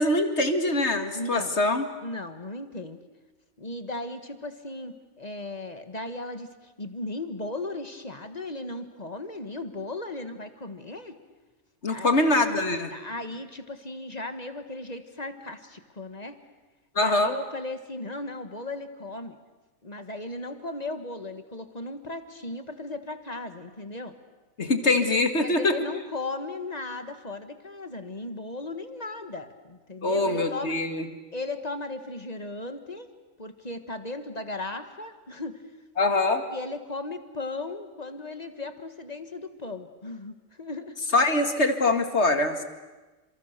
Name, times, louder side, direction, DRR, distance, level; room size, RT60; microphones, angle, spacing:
voice 1, 0.0-1.8 11.8-12.9 17.0-17.3 24.6-25.7 30.0-31.1 36.0-36.4 41.1-42.6, left 2 dB, 55° left, 7 dB, 2.5 m, -23 dB
voice 2, 1.1-1.6 2.0-3.0 3.6-11.2 11.9-12.1 12.9-16.4 17.0-19.4 19.8-24.2 24.8-24.9 25.3-30.8 31.3-33.1 33.4-35.6 36.5-41.0, left 2 dB, 30° left, 8 dB, 1.8 m, -36 dB
30.0 x 27.0 x 6.8 m, 1.2 s
omnidirectional pair, 1.4 m